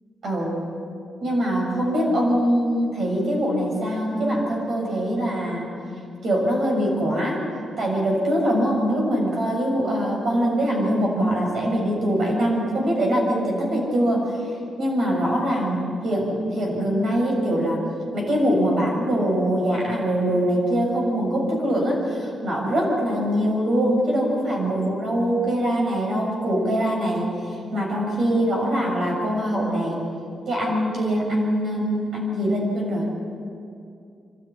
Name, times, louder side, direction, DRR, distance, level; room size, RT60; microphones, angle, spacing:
voice 1, 0.2-0.6 1.2-5.7 6.2-7.4 7.8-14.3 14.8-17.8 18.1-27.3 27.7-30.0 30.5-33.1, equal, 55° right, -1 dB, 7.1 m, -23 dB
27.5 x 12.5 x 9.9 m, 2.5 s
wide cardioid pair, 170°, 0 cm